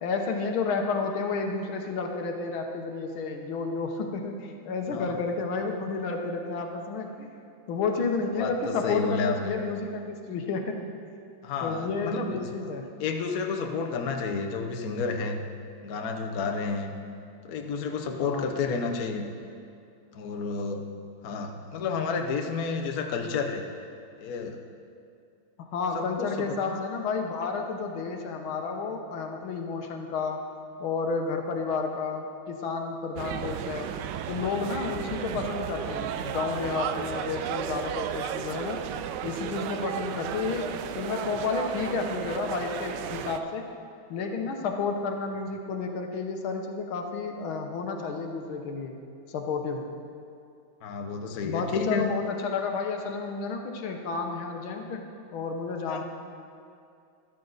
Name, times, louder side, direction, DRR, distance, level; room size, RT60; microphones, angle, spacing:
voice 1, 0.0-7.3 7.7-10.8 11.6-12.9 18.2-18.5 25.6-30.4 30.8-33.9 34.3-38.8 39.2-43.7 44.1-48.9 49.3-49.9 51.4-55.0 55.3-56.0, left 4 dB, 80° left, 3 dB, 1.9 m, -31 dB
voice 2, 8.4-9.5 11.4-12.5 13.0-15.4 15.8-16.9 17.4-19.3 20.1-20.9 21.2-23.6 24.2-24.6 25.9-26.8 50.8-52.2 55.9-56.0, left 4 dB, 55° left, 3 dB, 1.1 m, -31 dB
sound 1, 33.2-43.4, right 9 dB, 75° right, 1.0 m, -34 dB
14.0 x 12.0 x 4.0 m, 2.5 s
omnidirectional pair, 2.2 m